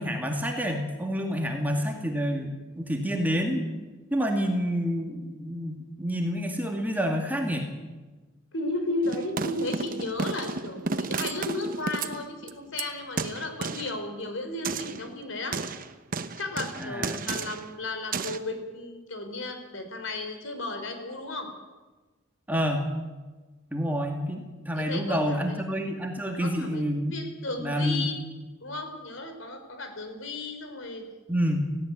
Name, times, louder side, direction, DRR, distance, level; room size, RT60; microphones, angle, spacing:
voice 1, 0.0-3.7 4.1-7.7 16.8-17.2 22.5-22.8 23.7-27.1 27.6-28.1 31.3-31.6, equal, 10° right, 2 dB, 2.2 m, -28 dB
voice 2, 8.5-15.6 16.4-21.5 24.7-25.4 26.4-26.8 27.1-28.2 28.6-31.0, left 2 dB, 75° left, 7 dB, 3.9 m, -34 dB
sound 1, 9.0-12.8 13.2-14.0 14.6-15.1 15.5-17.7 18.1-18.4, right 4 dB, 45° right, 0.9 m, -32 dB
17.0 x 16.0 x 9.7 m, 1.2 s
head